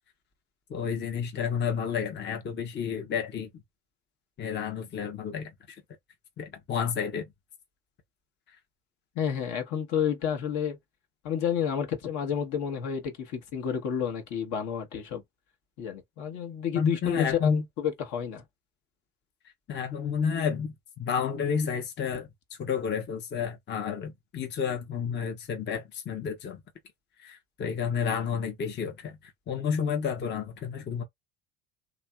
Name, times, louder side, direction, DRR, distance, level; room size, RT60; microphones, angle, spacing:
voice 1, 0.7-3.5 4.4-5.8 6.4-7.2 16.7-17.6 19.7-20.7 21.0-22.3 22.6-26.6 27.2-31.0, left 7 dB, 30° left, 0.8 m, -30 dB
voice 2, 9.1-10.8 11.2-15.2 15.8-18.4, left 8 dB, 50° left, 1.0 m, -30 dB
2.8 x 2.4 x 2.3 m
hypercardioid pair, 75°, 37 cm